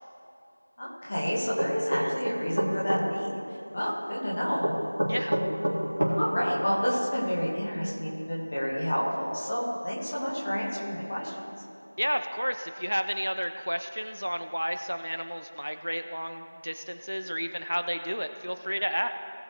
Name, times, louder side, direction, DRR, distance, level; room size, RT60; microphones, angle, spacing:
voice 1, 0.8-3.3 3.7-4.7 6.0-11.3, equal, 15° left, -6 dB, 1.6 m, -29 dB
sound 1, 1.6-3.0 4.6-6.2, right 1 dB, 45° right, 2.0 m, -27 dB
voice 2, 5.1-5.4 12.0-19.1, equal, 80° right, 8 dB, 0.9 m, -31 dB
19.0 x 6.8 x 3.2 m, 2.6 s
figure-of-eight pair, 175°, 0 cm